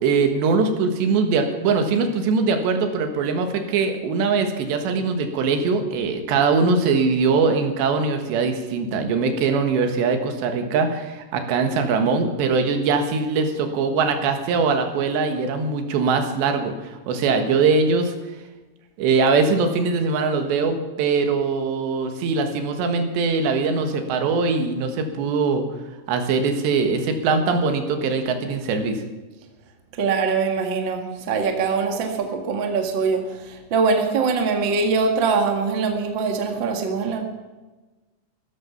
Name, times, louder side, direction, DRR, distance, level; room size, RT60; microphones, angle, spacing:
voice 1, 0.0-18.2 19.0-25.6 26.1-29.0, right 4 dB, 80° right, 6 dB, 3.7 m, -22 dB
voice 2, 30.0-37.2, right 4 dB, 45° right, 4 dB, 1.5 m, -23 dB
16.0 x 13.5 x 5.7 m, 1.2 s
omnidirectional pair, 5.0 m